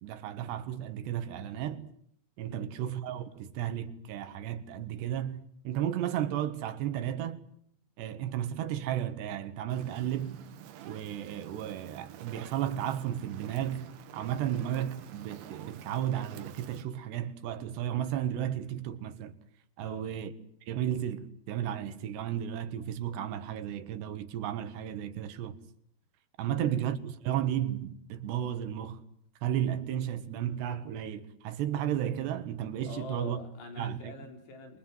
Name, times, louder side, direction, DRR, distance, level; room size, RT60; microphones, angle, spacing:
voice 1, 0.0-1.9 2.4-7.4 8.0-10.4 10.9-19.4 19.8-20.3 20.7-25.6 26.4-29.0 29.4-33.4 33.8-34.1, right 10 dB, 85° right, 3.8 m, -33 dB
Fire, 9.7-16.8, right 11 dB, 70° right, 3.2 m, -49 dB
voice 2, 19.8-20.1 26.4-26.6 32.8-34.8, left 3 dB, 80° left, 6.2 m, -44 dB
27.5 x 23.0 x 7.5 m
omnidirectional pair, 4.8 m